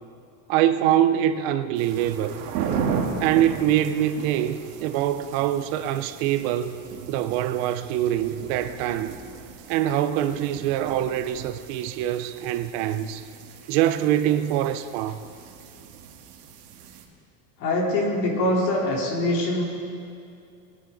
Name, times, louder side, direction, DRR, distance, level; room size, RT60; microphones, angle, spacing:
voice 1, 0.5-2.4 3.2-6.8 7.1-9.2 9.7-13.2 13.7-15.2, right 11 dB, 40° right, 0.5 m, -24 dB
sound 1, 1.8-17.1, right 6 dB, 75° right, 1.8 m, -36 dB
voice 2, 17.6-19.6, left 1 dB, 90° left, 3.7 m, -23 dB
20.0 x 10.5 x 3.9 m
cardioid pair, 175°, 49 cm